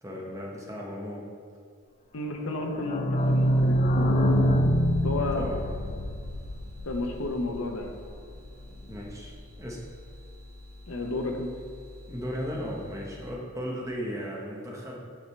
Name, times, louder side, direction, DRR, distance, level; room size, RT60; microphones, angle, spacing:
voice 1, 0.0-1.2 5.3-5.6 8.9-9.8 12.1-15.0, equal, 15° right, -2 dB, 1.0 m, -36 dB
voice 2, 2.1-4.3 5.0-5.5 6.9-7.9 10.9-11.5, left 2 dB, 85° left, 4 dB, 0.8 m, -32 dB
sound 1, 2.5-8.0 8.4-8.5 8.6-8.7 9.0-9.1, equal, 35° left, 0.4 m, -25 dB
sound 2, 3.2-13.3, left 1 dB, 80° right, 1.2 m, -48 dB
8.3 x 5.2 x 3.1 m, 2.1 s
head